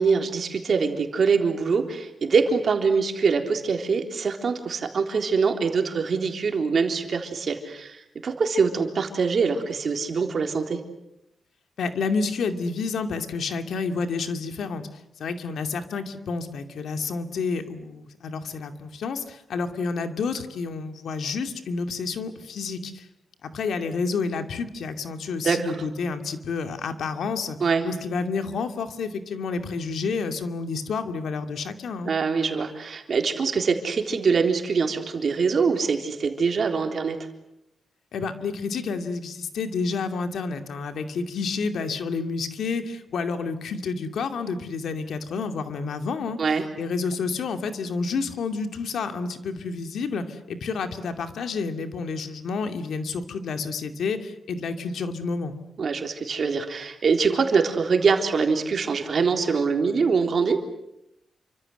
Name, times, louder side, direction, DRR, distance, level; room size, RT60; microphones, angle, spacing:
voice 1, 0.0-10.8 25.4-25.7 27.6-27.8 32.1-37.2 46.4-46.6 55.8-60.6, right 5 dB, 45° right, 5 dB, 3.7 m, -24 dB
voice 2, 11.8-14.8 15.2-23.1 23.4-27.6 27.8-32.1 38.1-46.4 46.8-55.5, left 4 dB, 80° left, 7 dB, 2.5 m, -29 dB
28.5 x 25.5 x 8.0 m, 0.82 s
wide cardioid pair, 160°, 0 cm